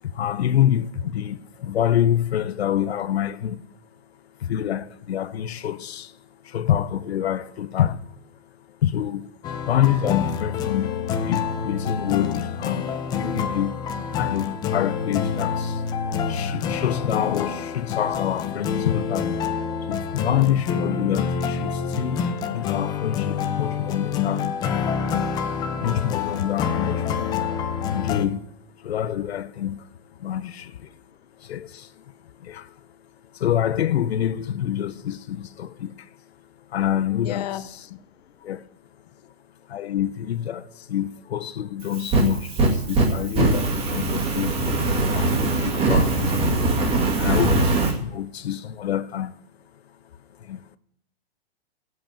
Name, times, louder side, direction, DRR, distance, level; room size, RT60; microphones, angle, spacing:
voice 1, 0.0-3.6 4.4-6.2 6.4-8.3 8.8-9.3 9.6-15.9 16.2-19.5 19.8-22.3 22.5-24.5 25.8-27.5 27.9-28.5 28.8-31.0 31.4-32.8 33.3-36.2 36.7-37.9 38.4-38.7 39.7-44.6 45.0-46.8 47.2-49.4 49.7-49.8 50.4-50.7, left 10 dB, 80° left, 0.9 m, -27 dB
sound 1, 9.4-28.3, left 6 dB, 15° left, 0.6 m, -27 dB
voice 2, 37.1-38.0, left 12 dB, 40° left, 1.0 m, -33 dB
Fire, 41.8-47.9, right 2 dB, 20° right, 2.1 m, -22 dB
15.0 x 8.2 x 8.8 m
hypercardioid pair, 165°, 31 cm